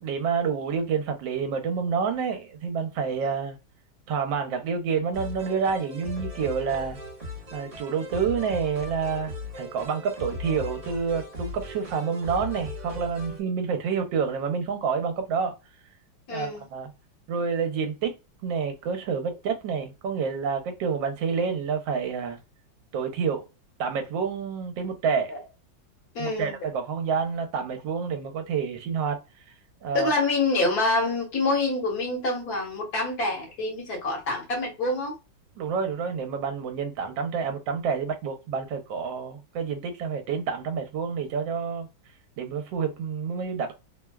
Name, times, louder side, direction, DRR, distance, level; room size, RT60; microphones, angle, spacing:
voice 1, 0.0-3.6 4.1-7.0 7.5-15.6 16.3-16.9 17.3-18.1 18.4-22.4 22.9-23.4 23.8-25.3 26.2-29.2 29.8-30.1 35.6-41.9 42.4-43.7, right 6 dB, 75° right, 1.4 m, -28 dB
sound 1, 5.1-13.4, left 2 dB, 45° right, 1.5 m, -38 dB
voice 2, 16.3-16.6 25.3-25.4 26.1-26.5 29.9-35.2, left 2 dB, 55° left, 1.5 m, -26 dB
3.4 x 2.2 x 2.2 m
omnidirectional pair, 2.1 m